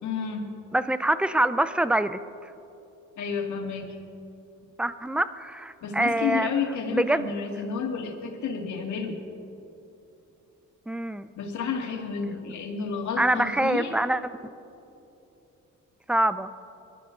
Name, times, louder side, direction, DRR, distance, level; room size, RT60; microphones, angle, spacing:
voice 1, 0.0-0.5 3.2-4.0 5.8-9.2 11.4-14.0, left 5 dB, 70° left, 1 dB, 2.3 m, -31 dB
voice 2, 0.7-2.2 4.8-6.5 6.9-7.3 10.9-11.3 13.2-14.2 16.1-16.5, right 1 dB, 5° right, 13 dB, 0.5 m, -25 dB
23.0 x 12.0 x 3.9 m, 2.8 s
cardioid pair, 90°, 30 cm